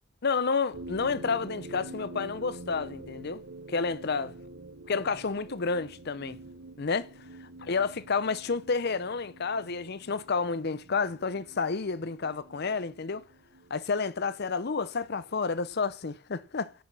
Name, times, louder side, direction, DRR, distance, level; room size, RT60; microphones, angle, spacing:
voice 1, 0.2-4.4 4.9-6.4 6.8-7.1 7.4-13.2 13.7-16.7, left 4 dB, 50° left, 0.6 m, -30 dB
sound 1, 0.7-15.6, right 2 dB, 55° right, 1.1 m, -47 dB
10.5 x 6.0 x 7.5 m
head